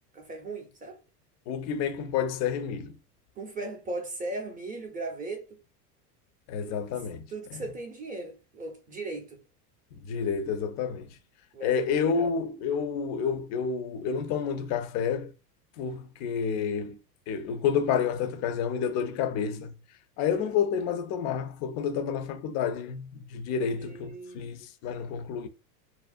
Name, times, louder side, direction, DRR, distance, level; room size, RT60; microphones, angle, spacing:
voice 1, 0.1-1.0 3.4-5.4 6.6-6.8 7.3-9.4 11.5-12.3 20.2-20.4 23.6-24.4, right 2 dB, 20° right, 0.5 m, -38 dB
voice 2, 1.5-2.9 6.5-7.2 7.5-7.6 9.9-11.1 11.6-15.3 15.8-17.0 17.3-19.7 20.2-25.5, left 7 dB, 40° left, 0.4 m, -29 dB
2.5 x 2.0 x 2.4 m
supercardioid pair, 110°, 47 cm